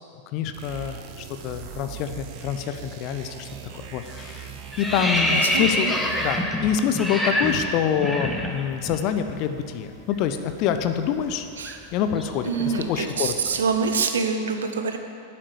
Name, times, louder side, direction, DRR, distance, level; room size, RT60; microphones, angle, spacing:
voice 1, 0.3-3.5 3.9-5.9 6.2-11.5 11.9-13.6, left 9 dB, 40° left, 9 dB, 0.9 m, -26 dB
sound 1, 0.5-6.7, right 8 dB, 40° right, 1.1 m, -40 dB
sound 2, 3.5-3.8 4.1-9.0 9.3-9.5 9.8-13.8, left 1 dB, 5° left, 1.6 m, -27 dB
voice 2, 5.0-5.9 11.6-11.8 12.4-15.0, right 5 dB, 65° right, 6 dB, 1.2 m, -26 dB
11.5 x 8.9 x 8.2 m, 2.6 s
figure-of-eight pair, 90°, 0 cm